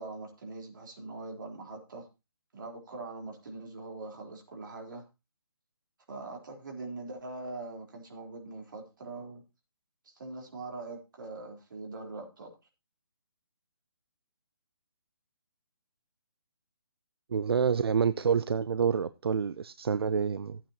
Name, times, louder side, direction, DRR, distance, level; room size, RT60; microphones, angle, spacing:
voice 1, 0.0-2.1 2.5-5.0 6.1-9.4 10.0-12.5, right 3 dB, 55° right, 3.9 m, -42 dB
voice 2, 17.3-20.6, right 6 dB, 80° right, 0.5 m, -28 dB
15.0 x 8.8 x 2.9 m
hypercardioid pair, 165°, 13 cm